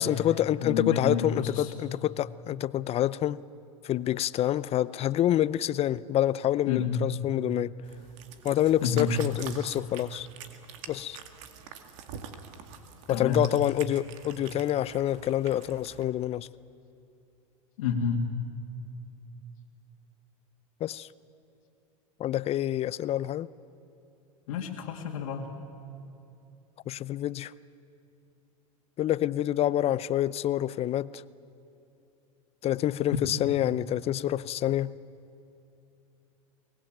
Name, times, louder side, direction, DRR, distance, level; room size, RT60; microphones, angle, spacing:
voice 1, 0.0-3.4 3.8-7.7 8.4-10.3 10.9-11.2 13.1-16.5 20.8-21.1 22.2-23.5 26.9-27.5 29.0-31.2 32.6-34.9, left 12 dB, 35° left, 19 dB, 0.6 m, -27 dB
voice 2, 0.6-1.7 6.7-7.0 8.8-9.1 13.1-13.4 17.8-18.2 24.5-25.5, left 6 dB, 75° left, 0 dB, 2.3 m, -29 dB
Cat, 7.8-16.0, right 7 dB, 65° right, 2.2 m, -46 dB
23.5 x 19.5 x 9.0 m, 2.8 s
hypercardioid pair, 100°, 17 cm